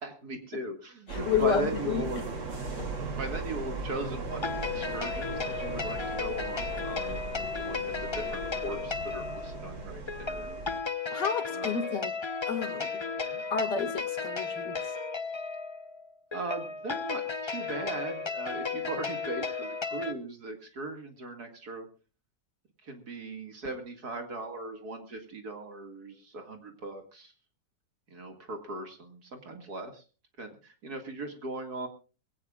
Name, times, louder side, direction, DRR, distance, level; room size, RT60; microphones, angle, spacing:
voice 1, 0.0-2.2 2.8-4.4 4.7-10.6 11.5-11.9 13.1-13.4 16.3-21.9 22.8-27.3 28.1-30.0 30.4-31.9, right 2 dB, 55° right, 5 dB, 2.6 m, -39 dB
voice 2, 1.1-2.0 11.1-12.1 12.5-13.0 13.5-15.0, left 6 dB, 65° left, 7 dB, 2.6 m, -30 dB
sound 1, 1.1-10.8, right 3 dB, 80° right, 3.7 m, -38 dB
sound 2, 4.3-20.1, left 5 dB, 40° left, 0.4 m, -34 dB
22.0 x 17.0 x 2.4 m, 0.35 s
omnidirectional pair, 2.0 m